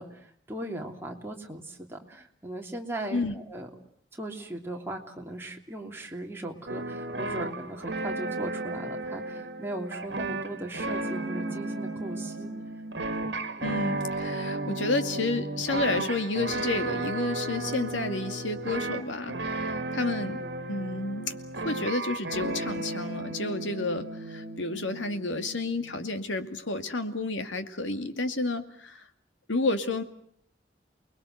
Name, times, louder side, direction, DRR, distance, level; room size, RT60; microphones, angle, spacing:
voice 1, 0.0-3.7 4.1-12.5, right 1 dB, 10° right, 0 dB, 3.0 m, -38 dB
sound 1, 6.7-26.0, right 2 dB, 65° right, 2.1 m, -34 dB
voice 2, 13.6-20.4 20.7-29.0 29.5-30.0, left 2 dB, 85° left, 8 dB, 2.4 m, -31 dB
29.5 x 21.0 x 8.0 m, 0.64 s
head